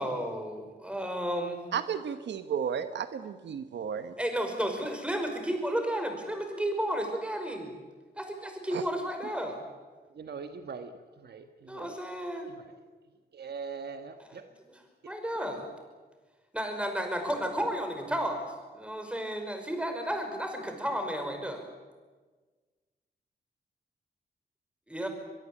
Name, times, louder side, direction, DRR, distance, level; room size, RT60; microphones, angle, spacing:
voice 1, 0.0-1.6 4.2-7.7 8.2-9.7 11.7-12.5 14.2-14.3 14.7-15.7 16.5-21.7 24.9-25.1, equal, 5° right, 5 dB, 5.4 m, -33 dB
voice 2, 1.7-4.1 8.7-8.8, right 7 dB, 85° right, 10 dB, 1.2 m, -33 dB
voice 3, 10.1-12.0 12.5-12.8 13.3-14.5 15.0-15.1, right 5 dB, 65° right, 8 dB, 1.4 m, -42 dB
23.0 x 22.5 x 8.6 m, 1.4 s
wide cardioid pair, 100°, 18 cm